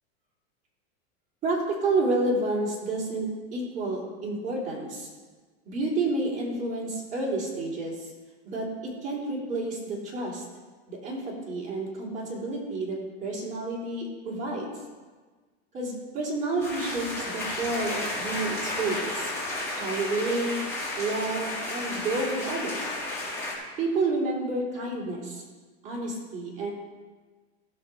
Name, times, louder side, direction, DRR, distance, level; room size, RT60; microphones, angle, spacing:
voice 1, 1.4-5.1 5.6-8.1 8.4-10.4 10.9-14.7 15.7-19.3 19.7-20.6 21.0-23.0 23.8-25.4 25.8-26.7, right 2 dB, 20° right, -4 dB, 3.2 m, -30 dB
sound 1, 16.6-23.6, left 1 dB, 5° left, 2.5 m, -32 dB
16.0 x 6.2 x 4.9 m, 1.4 s
supercardioid pair, 160°, 34 cm